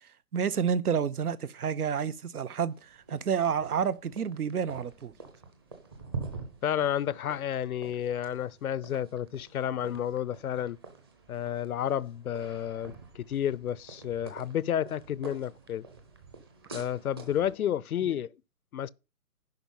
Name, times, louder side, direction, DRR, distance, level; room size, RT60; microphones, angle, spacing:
voice 1, 0.3-5.1, right 7 dB, 75° right, 0.8 m, -29 dB
sound 1, 2.7-17.5, right 4 dB, 15° right, 0.8 m, -46 dB
voice 2, 6.6-10.8 11.3-15.9 16.7-18.3 18.7-18.9, left 10 dB, 70° left, 0.6 m, -31 dB
11.0 x 4.7 x 5.4 m
hypercardioid pair, 165°, 46 cm